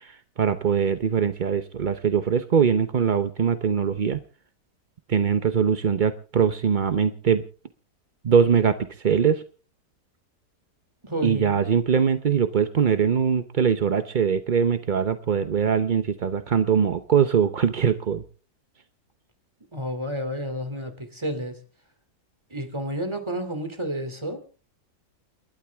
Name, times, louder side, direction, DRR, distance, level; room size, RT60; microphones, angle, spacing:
voice 1, 0.0-4.2 5.1-7.4 8.2-9.4 11.2-18.2, right 7 dB, 45° right, 0.6 m, -22 dB
voice 2, 11.0-11.6 19.7-21.5 22.5-24.4, equal, 15° right, 2.7 m, -30 dB
29.0 x 12.0 x 3.5 m
omnidirectional pair, 1.8 m